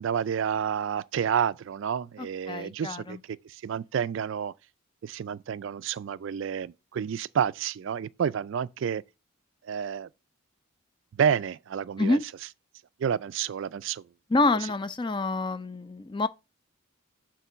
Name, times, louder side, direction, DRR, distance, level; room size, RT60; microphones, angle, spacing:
voice 1, 0.0-3.2 3.4-4.5 5.0-9.0 9.6-10.1 11.2-12.2 13.0-14.0, right 7 dB, 60° right, 0.3 m, -29 dB
voice 2, 2.2-3.2 12.0-12.2 14.3-16.3, left 2 dB, 20° left, 0.4 m, -27 dB
6.8 x 3.8 x 6.0 m
head